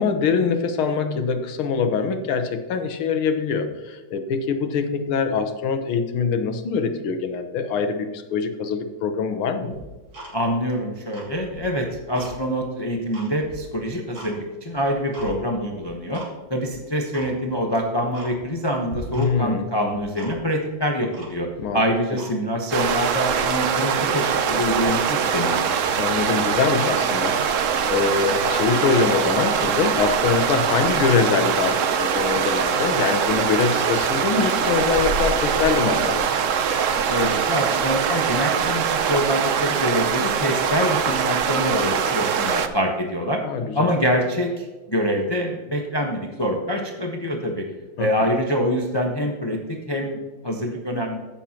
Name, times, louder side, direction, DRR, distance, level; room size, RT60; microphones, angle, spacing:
voice 1, 0.0-9.7 19.1-19.7 21.6-21.8 26.0-27.4 27.6-36.4 43.4-43.9 48.0-48.1, left 5 dB, 85° left, 8 dB, 1.8 m, -23 dB
Tick-tock, 9.7-10.7 11.0-12.4 12.8-14.3 14.7-15.3 15.8-16.3 16.6-16.7 17.1-17.3 17.7-17.8 18.1-18.6 18.9-19.5 19.8-20.6 21.1-21.7 22.1-22.3 22.7-22.8 23.1-23.4 23.8-23.9 24.1-25.6 26.1-26.3, right 1 dB, 45° right, 3.3 m, -40 dB
voice 2, 10.3-16.2 16.5-21.5 21.7-25.6 37.0-43.4 43.7-47.7 48.0-50.2 50.4-51.2, equal, 25° left, 1 dB, 0.6 m, -25 dB
sound 1, 22.7-42.7, right 7 dB, 85° right, 0.6 m, -22 dB
15.0 x 7.0 x 2.9 m, 1.2 s
omnidirectional pair, 2.2 m